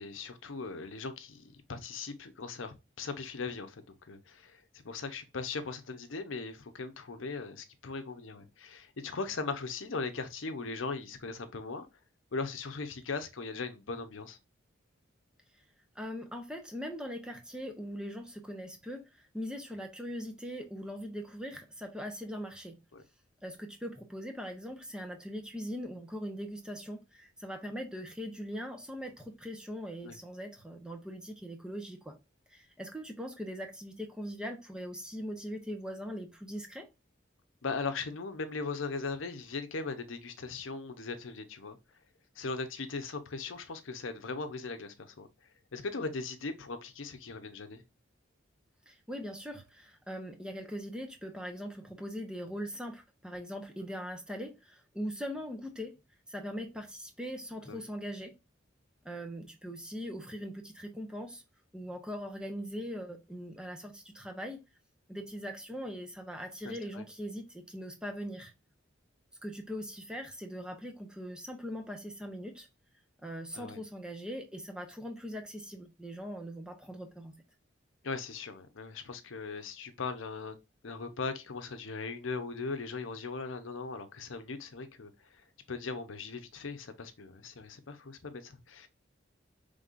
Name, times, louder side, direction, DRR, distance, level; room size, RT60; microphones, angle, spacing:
voice 1, 0.0-11.9 12.3-14.4 22.9-23.0 30.0-30.2 37.6-41.8 42.4-45.3 45.7-47.8 57.7-57.8 66.6-67.0 73.5-73.8 78.0-80.6 80.8-88.9, left 4 dB, 80° left, 0.7 m, -39 dB
voice 2, 15.9-22.8 23.4-32.2 32.5-36.9 48.9-55.9 56.3-58.3 59.0-61.4 61.7-64.6 65.1-68.5 69.4-72.7 73.2-77.3, equal, 5° right, 0.8 m, -41 dB
5.3 x 3.4 x 2.5 m
head